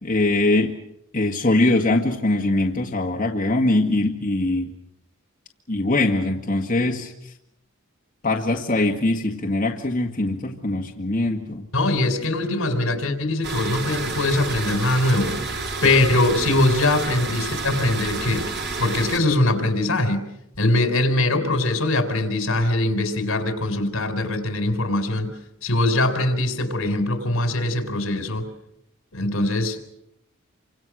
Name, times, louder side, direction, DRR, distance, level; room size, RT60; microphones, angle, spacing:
voice 1, 0.0-0.8 1.1-4.7 5.7-7.1 8.2-11.6, left 2 dB, 40° left, 0 dB, 1.8 m, -22 dB
voice 2, 11.7-15.5 15.8-18.4 18.8-20.2 20.6-25.3 25.6-28.5 29.1-29.8, left 2 dB, 70° left, 8 dB, 4.4 m, -22 dB
sound 1, 13.4-19.2, right 3 dB, 50° right, 4.3 m, -30 dB
28.5 x 25.5 x 6.3 m, 0.81 s
head